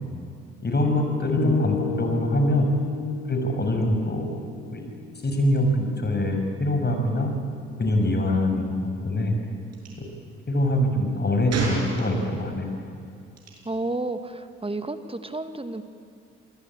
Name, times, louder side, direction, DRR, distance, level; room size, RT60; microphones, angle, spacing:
voice 1, 0.6-2.7 3.3-4.3 4.7-4.9 5.2-7.3 7.8-8.7 9.0-9.3 10.5-12.8, left 1 dB, 35° left, 3 dB, 6.5 m, -24 dB
sound 1, 1.4-5.5, left 6 dB, 50° left, 5.7 m, -32 dB
Gunshot gunfire, 9.7-9.9 11.5-12.5 13.4-13.6, right 4 dB, 60° right, 6.6 m, -31 dB
voice 2, 13.6-15.8, right 2 dB, 20° right, 9 dB, 2.0 m, -31 dB
27.5 x 19.5 x 8.9 m, 2.3 s
hypercardioid pair, 45°, 30 cm